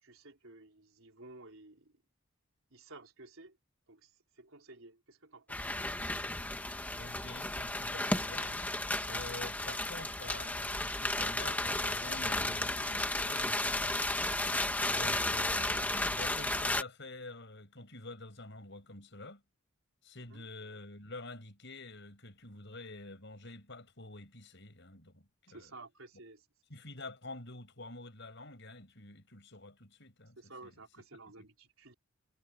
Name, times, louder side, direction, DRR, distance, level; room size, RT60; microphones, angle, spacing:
voice 1, 0.0-2.0 2.7-3.6 3.9-5.6 14.9-15.4 20.2-20.5 25.5-26.5 30.4-31.9, right 2 dB, 75° right, 4.0 m, -54 dB
sound 1, 5.5-16.8, left 1 dB, 5° left, 1.1 m, -33 dB
voice 2, 6.9-8.6 9.0-14.1 14.9-19.4 20.0-25.7 26.7-30.7 31.4-31.5, left 2 dB, 55° left, 7.0 m, -48 dB
head